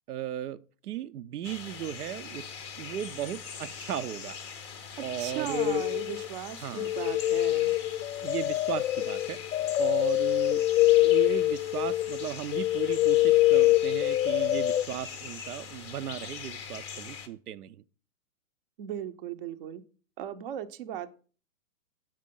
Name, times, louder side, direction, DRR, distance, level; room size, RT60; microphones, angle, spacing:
voice 1, 0.1-4.4 5.0-5.8 6.6-6.9 8.2-9.4 9.8-10.6 11.0-17.8, right 10 dB, 85° right, 0.6 m, -36 dB
sound 1, 1.4-17.3, left 6 dB, 20° left, 0.5 m, -42 dB
voice 2, 5.0-7.7 18.8-19.8 20.2-21.1, right 10 dB, 40° right, 0.6 m, -37 dB
sound 2, 5.5-6.3 6.8-14.8, left 15 dB, 70° left, 0.6 m, -25 dB
7.6 x 4.9 x 5.2 m
hypercardioid pair, 140°, 44 cm